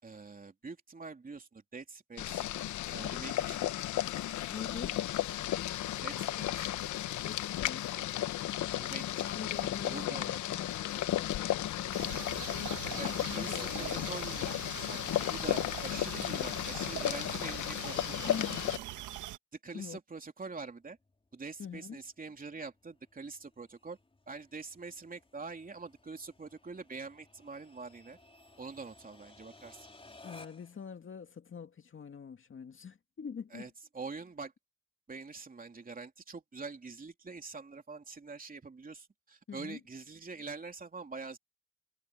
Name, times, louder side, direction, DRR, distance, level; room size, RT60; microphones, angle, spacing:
voice 1, 0.0-2.4 2.9-3.9 4.5-5.0 6.0-6.7 8.8-10.3 12.9-14.5 14.9-15.0 15.3-18.7 19.6-21.0 21.3-24.0 24.3-28.2 28.6-29.9 33.5-34.5 35.1-41.4, right 4 dB, 30° right, 3.2 m, -45 dB
Boiling, 2.2-18.8, left 13 dB, 75° left, 1.0 m, -34 dB
voice 2, 4.5-5.0 7.2-7.9 9.2-12.3 12.9-14.1 18.1-18.5 19.7-20.0 21.6-22.0 30.2-33.7 39.5-39.8, left 6 dB, 40° left, 2.2 m, -44 dB
sound 1, 11.9-19.4, right 13 dB, 85° right, 1.4 m, -43 dB
sound 2, 20.6-30.8, left 2 dB, 20° left, 4.5 m, -59 dB
cardioid pair, 90°, 30 cm